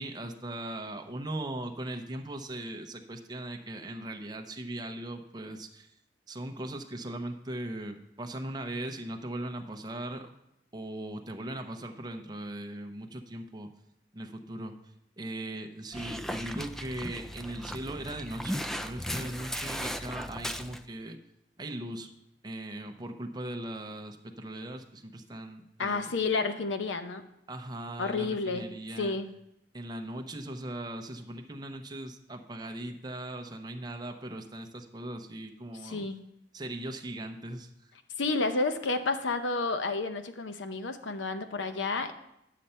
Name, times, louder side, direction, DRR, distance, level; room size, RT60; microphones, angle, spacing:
voice 1, 0.0-5.9 6.3-10.3 10.7-13.7 14.1-14.7 15.2-21.2 21.6-22.1 22.4-26.1 27.5-29.2 29.7-36.1 36.5-37.7, right 1 dB, 20° right, 4 dB, 0.7 m, -39 dB
Dog, 15.9-20.8, equal, ahead, 0.3 m, -36 dB
voice 2, 25.8-27.2 28.0-28.6 29.0-29.3 35.8-36.2 38.2-42.1, left 3 dB, 85° left, 8 dB, 0.8 m, -30 dB
9.9 x 6.7 x 4.3 m, 0.82 s
head